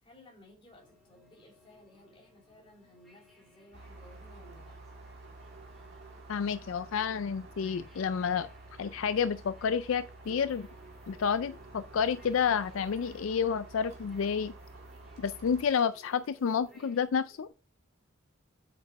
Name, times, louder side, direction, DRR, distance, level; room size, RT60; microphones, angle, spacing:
voice 1, 0.0-4.7, left 1 dB, 25° left, 3.4 m, -57 dB
sound 1, 0.7-17.0, left 2 dB, ahead, 2.5 m, -63 dB
sound 2, 3.7-15.6, right 2 dB, 50° right, 2.3 m, -50 dB
voice 2, 6.3-8.5 8.8-10.7 11.1-14.5 15.2-17.5, left 6 dB, 70° left, 0.4 m, -30 dB
sound 3, 10.2-17.5, right 3 dB, 30° right, 2.0 m, -59 dB
8.1 x 5.1 x 4.6 m
head